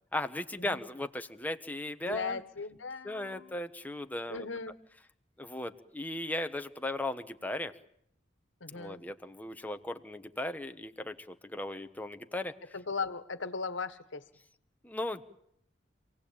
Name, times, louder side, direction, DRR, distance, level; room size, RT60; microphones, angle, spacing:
voice 1, 0.1-2.4 3.0-4.5 5.4-7.7 8.7-12.5 14.8-15.2, left 1 dB, 10° left, 7 dB, 1.1 m, -37 dB
voice 2, 2.1-3.5 4.3-4.7 8.6-9.0 12.7-14.2, left 4 dB, 85° left, 12 dB, 1.5 m, -37 dB
27.0 x 17.5 x 8.7 m, 0.72 s
head